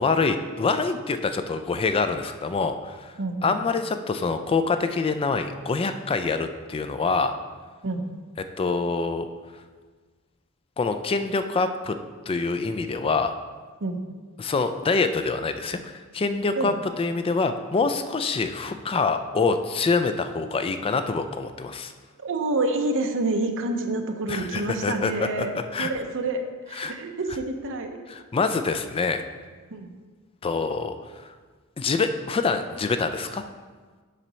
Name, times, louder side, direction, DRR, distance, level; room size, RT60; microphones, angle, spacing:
voice 1, 0.0-3.1 3.4-7.4 8.6-9.3 10.8-12.0 12.3-13.3 14.4-21.9 24.3-25.5 25.7-25.9 26.7-26.9 28.1-29.2 30.4-31.0 31.8-33.4, left 4 dB, 25° left, 9 dB, 0.3 m, -25 dB
voice 2, 3.2-3.6 7.8-8.0 13.8-14.0 16.6-16.7 22.2-26.4 26.7-27.9 29.7-29.9, right 2 dB, 60° right, 5 dB, 0.7 m, -28 dB
7.4 x 4.0 x 5.5 m, 1.4 s
head